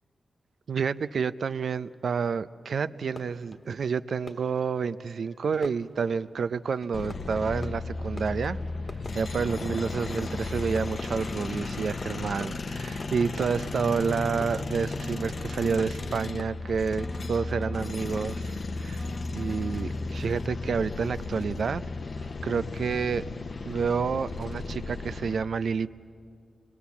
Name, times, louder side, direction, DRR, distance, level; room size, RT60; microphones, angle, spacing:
voice 1, 0.7-8.6 9.1-19.1 19.3-21.8 22.4-23.2 23.6-25.9, right 6 dB, 75° right, 13 dB, 0.5 m, -29 dB
Fireworks, 3.0-17.3, left 2 dB, 35° left, 1.4 m, -49 dB
sound 1, 6.9-25.4, left 3 dB, 55° left, 0.8 m, -34 dB
sound 2, 9.7-10.5 11.0-12.5 13.0-14.5 15.0-16.5 17.0-18.5 19.0-19.9, left 1 dB, 10° left, 0.7 m, -45 dB
26.0 x 21.5 x 7.2 m, 2.3 s
cardioid pair, 60°, 0 cm